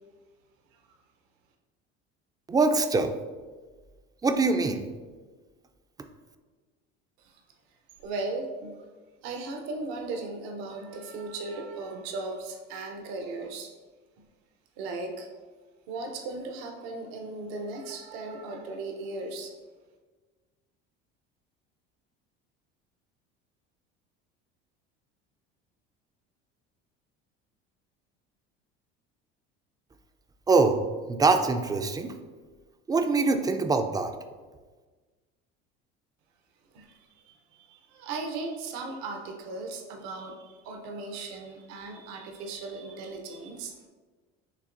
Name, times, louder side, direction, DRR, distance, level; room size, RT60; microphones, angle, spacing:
voice 1, 2.5-3.1 4.2-4.8 30.5-30.8 31.1-32.1 32.9-34.1, right 3 dB, 15° right, 7 dB, 0.3 m, -23 dB
voice 2, 8.0-8.7 9.2-13.7 14.8-15.3 15.9-19.5 36.7-37.0 37.3-37.4 37.6-43.9, right 3 dB, 75° right, 3 dB, 0.7 m, -37 dB
6.7 x 2.9 x 2.5 m, 1.4 s
supercardioid pair, 90°, 30 cm